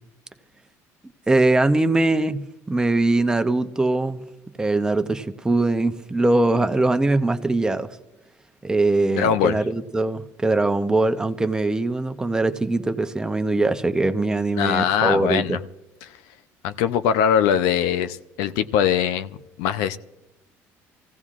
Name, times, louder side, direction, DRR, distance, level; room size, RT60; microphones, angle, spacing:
voice 1, 1.3-4.2 4.6-7.9 8.6-15.6, right 2 dB, 10° right, 0.7 m, -21 dB
voice 2, 9.1-9.6 14.6-15.6 16.0-16.1 16.6-20.0, left 8 dB, 90° left, 0.6 m, -22 dB
25.5 x 16.0 x 2.5 m
cardioid pair, 115°, 6 cm